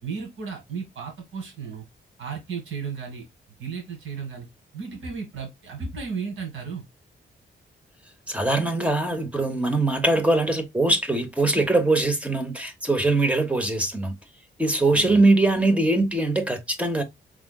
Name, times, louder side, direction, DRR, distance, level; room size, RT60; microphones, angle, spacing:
voice 1, 0.0-1.9 2.2-3.2 3.6-4.5 4.7-6.8 14.9-15.2, right 5 dB, 85° right, 1.7 m, -34 dB
voice 2, 8.3-14.1 14.6-17.0, right 2 dB, 5° right, 0.8 m, -22 dB
5.0 x 3.6 x 2.2 m
wide cardioid pair, 140°, 20 cm